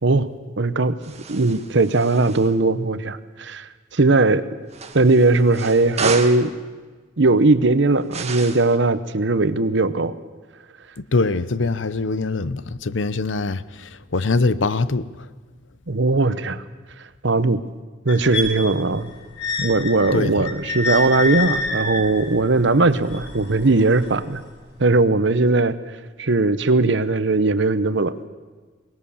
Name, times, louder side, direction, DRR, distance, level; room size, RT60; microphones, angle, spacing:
voice 1, 0.6-1.0 1.3-4.4 4.9-6.5 7.2-10.1 15.9-16.6 17.2-17.6 18.0-19.1 19.6-24.4 24.8-25.8 26.2-28.3, right 3 dB, 70° right, 1.0 m, -19 dB
sound 1, 1.0-2.5 4.7-6.5 8.1-8.8, right 5 dB, 35° right, 1.5 m, -31 dB
voice 2, 11.0-15.3 20.1-20.5, left 3 dB, 85° left, 0.8 m, -23 dB
sound 2, 18.1-24.2 24.9-25.0, left 3 dB, 65° left, 5.4 m, -28 dB
22.0 x 18.5 x 7.1 m
head